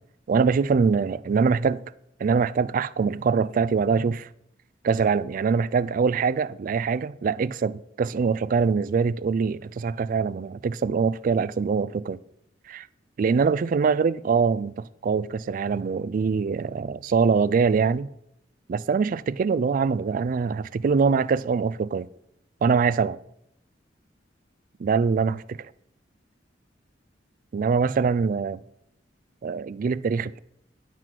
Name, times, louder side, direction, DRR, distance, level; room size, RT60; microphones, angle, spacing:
voice 1, 0.3-1.8 2.2-4.3 4.8-12.2 12.7-12.9 13.2-18.1 18.7-22.1 22.6-23.2 24.8-25.7 27.5-28.6 29.4-30.4, right 5 dB, 45° right, 0.3 m, -23 dB
10.5 x 6.1 x 4.5 m
head